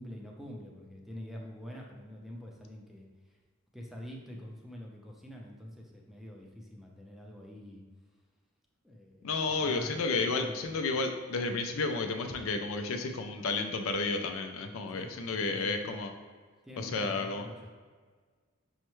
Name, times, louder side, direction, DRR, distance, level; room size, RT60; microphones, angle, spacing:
voice 1, 0.0-3.1 3.7-7.8 8.8-10.7 14.9-16.1 16.6-17.7, equal, ahead, -1 dB, 0.5 m, -46 dB
voice 2, 9.2-16.1 16.8-17.5, left 3 dB, 80° left, 6 dB, 0.4 m, -32 dB
5.5 x 2.1 x 3.0 m, 1.5 s
head